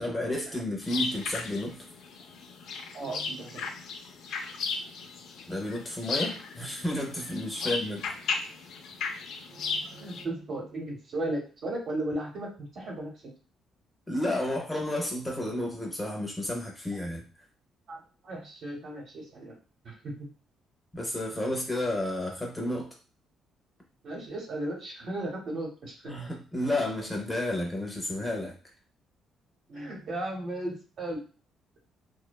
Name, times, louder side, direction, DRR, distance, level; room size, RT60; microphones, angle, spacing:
voice 1, 0.0-1.8 5.5-8.1 14.1-17.3 20.9-22.9 26.1-28.6, left 1 dB, 10° left, 0 dB, 0.5 m, -31 dB
sound 1, 0.8-10.2, left 4 dB, 65° left, 0.4 m, -36 dB
voice 2, 2.9-3.8 7.6-7.7 9.5-13.3 17.9-19.6 19.8-20.3 24.0-26.2 29.7-31.2, right 1 dB, 50° right, 0 dB, 0.8 m, -36 dB
2.6 x 2.1 x 2.2 m, 0.37 s
cardioid pair, 140°, 0 cm